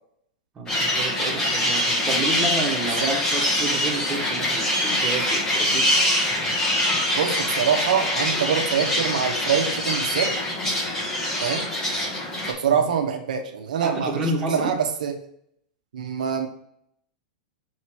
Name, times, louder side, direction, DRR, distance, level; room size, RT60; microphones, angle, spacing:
voice 1, 0.5-5.9 12.7-12.8 13.8-14.7, right 2 dB, 15° right, -1 dB, 1.7 m, -30 dB
sound 1, 0.7-12.5, left 1 dB, 15° left, 1.4 m, -24 dB
voice 2, 7.2-10.3 11.4-11.7 12.5-15.2 15.9-16.5, right 7 dB, 85° right, 3 dB, 1.1 m, -24 dB
6.5 x 3.1 x 6.0 m, 0.67 s
supercardioid pair, 145°, 4 cm